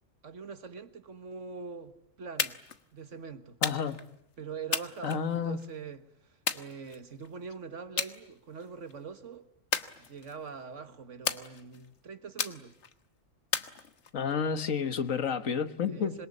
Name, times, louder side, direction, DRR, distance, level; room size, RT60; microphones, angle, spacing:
voice 1, 0.2-2.6 2.9-3.6 4.4-9.5 10.0-12.7 15.9-16.3, right 5 dB, 70° right, 1.9 m, -43 dB
sound 1, 2.4-2.8 3.6-4.1 4.7-5.7 6.5-7.3 8.0-8.2 8.6-8.9 9.7-10.5 11.3-11.9 12.4-12.9 13.5-14.3, left 6 dB, 60° left, 1.5 m, -34 dB
voice 2, 3.6-4.0 5.0-5.6 14.1-16.2, left 6 dB, 85° left, 1.7 m, -30 dB
27.0 x 22.0 x 9.7 m
omnidirectional pair, 1.3 m